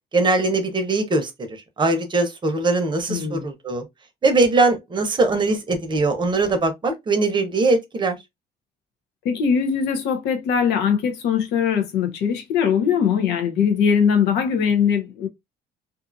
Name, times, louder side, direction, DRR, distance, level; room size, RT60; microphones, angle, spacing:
voice 1, 0.1-1.5 1.8-3.8 4.2-8.2, right 3 dB, 25° right, 0.8 m, -21 dB
voice 2, 3.1-3.5 9.2-15.3, left 7 dB, 80° left, 0.8 m, -21 dB
2.6 x 2.5 x 2.4 m
cardioid pair, 110°, 17 cm